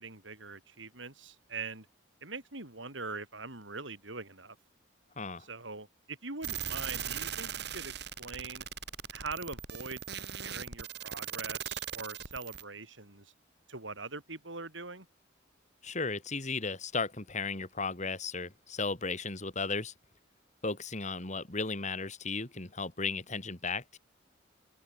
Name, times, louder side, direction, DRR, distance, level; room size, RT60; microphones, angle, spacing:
voice 1, 0.0-1.9 2.2-4.6 5.4-8.7 9.1-13.3 13.7-15.1, right 4 dB, 75° right, 6.9 m, -43 dB
sound 1, 6.4-12.6, right 8 dB, 60° right, 5.7 m, -39 dB
voice 2, 15.8-19.9 20.6-24.0, left 4 dB, 40° left, 2.6 m, -35 dB
open air
head